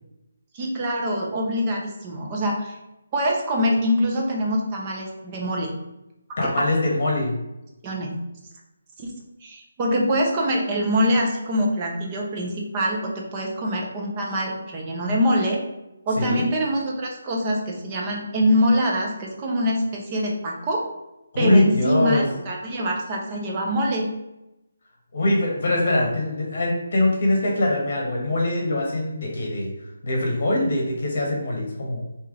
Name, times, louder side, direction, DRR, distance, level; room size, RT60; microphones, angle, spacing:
voice 1, 0.5-2.8 3.1-5.7 6.4-6.5 7.8-8.1 9.0-9.1 9.4-15.6 16.1-20.9 21.4-24.1, equal, 15° right, -1 dB, 0.4 m, -24 dB
voice 2, 6.4-7.4 16.2-16.4 21.3-22.3 25.1-29.7 30.0-32.1, left 1 dB, 35° left, -1 dB, 1.0 m, -22 dB
3.2 x 2.8 x 3.6 m, 0.94 s
hypercardioid pair, 180°, 0 cm